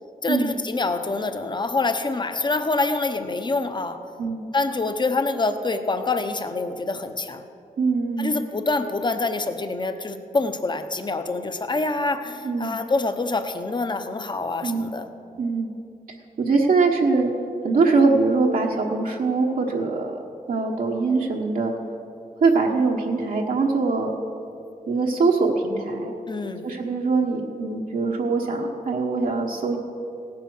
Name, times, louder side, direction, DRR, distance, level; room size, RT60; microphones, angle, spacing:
voice 1, 0.2-4.0 4.5-7.4 8.2-15.1 26.3-26.7, left 3 dB, 30° left, 8 dB, 0.9 m, -26 dB
voice 2, 7.8-8.4 12.4-12.7 14.6-14.9 15.4-15.7 16.4-17.3 17.6-20.2 20.5-21.7 22.4-24.2 24.9-26.2 26.6-29.8, right 4 dB, 70° right, -1 dB, 1.2 m, -22 dB
17.0 x 9.7 x 6.2 m, 2.7 s
wide cardioid pair, 130°, 15 cm